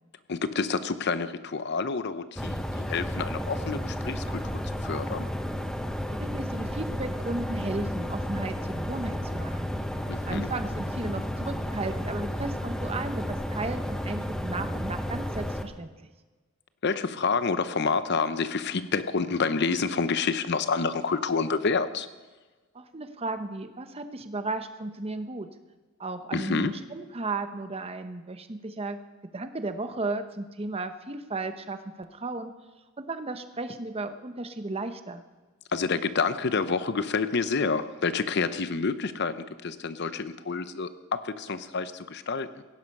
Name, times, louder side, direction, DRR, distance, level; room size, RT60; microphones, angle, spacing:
voice 1, 0.3-5.3 10.1-10.5 16.8-22.1 26.3-26.7 35.7-42.6, left 4 dB, 55° left, 12 dB, 0.7 m, -28 dB
sound 1, 2.4-15.6, equal, 5° left, 0.9 m, -32 dB
voice 2, 6.1-9.7 10.3-15.9 22.7-25.5 26.0-29.0 29.3-32.5 33.0-35.2, right 2 dB, 30° right, 9 dB, 0.8 m, -34 dB
17.0 x 11.0 x 5.4 m, 1.3 s
head